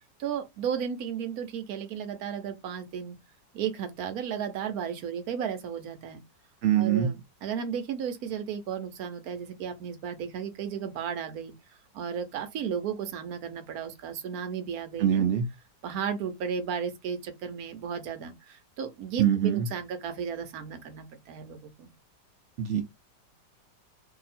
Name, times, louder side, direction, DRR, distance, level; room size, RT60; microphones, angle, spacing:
voice 1, 0.2-3.2 3.5-6.2 6.8-11.5 11.9-15.3 15.8-21.9, right 7 dB, 70° right, 1.1 m, -34 dB
voice 2, 6.6-7.1 15.0-15.5 19.2-19.7 22.6-22.8, right 9 dB, 90° right, 0.6 m, -24 dB
2.8 x 2.7 x 4.1 m
omnidirectional pair, 1.9 m